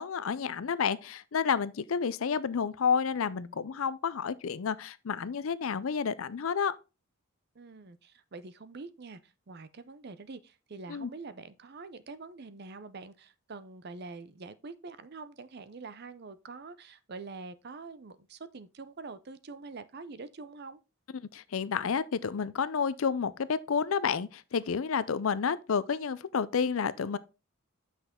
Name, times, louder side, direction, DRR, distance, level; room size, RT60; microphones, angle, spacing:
voice 1, 0.0-6.8 10.9-11.1 21.3-27.2, left 6 dB, 75° left, 0.5 m, -30 dB
voice 2, 7.5-20.8, right 3 dB, 50° right, 0.6 m, -45 dB
8.1 x 6.0 x 3.6 m
head